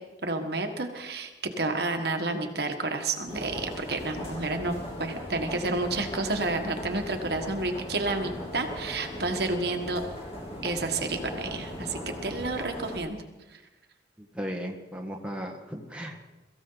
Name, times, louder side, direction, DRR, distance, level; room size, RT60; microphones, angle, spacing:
voice 1, 0.2-1.3 1.6-10.0 10.6-13.2 13.5-13.6, right 2 dB, 55° right, 5 dB, 1.5 m, -30 dB
sound 1, 3.3-13.0, equal, 30° left, 3.1 m, -38 dB
voice 2, 14.2-16.3, equal, 5° right, 1 dB, 1.6 m, -36 dB
23.0 x 15.0 x 4.0 m, 1.1 s
head